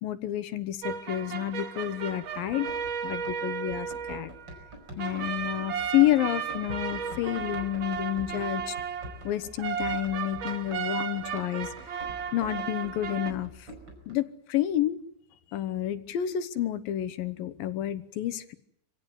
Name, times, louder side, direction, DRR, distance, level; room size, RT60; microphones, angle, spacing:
voice 1, 0.0-2.7 3.0-4.3 5.0-8.7 9.2-11.7 12.3-13.7 14.1-15.0 15.5-18.5, left 13 dB, 90° left, 12 dB, 3.0 m, -29 dB
sound 1, 0.8-13.3, right 7 dB, 80° right, 1.1 m, -35 dB
Run, 2.4-14.1, equal, 30° right, 5.6 m, -46 dB
26.0 x 17.0 x 9.5 m, 0.76 s
omnidirectional pair, 3.9 m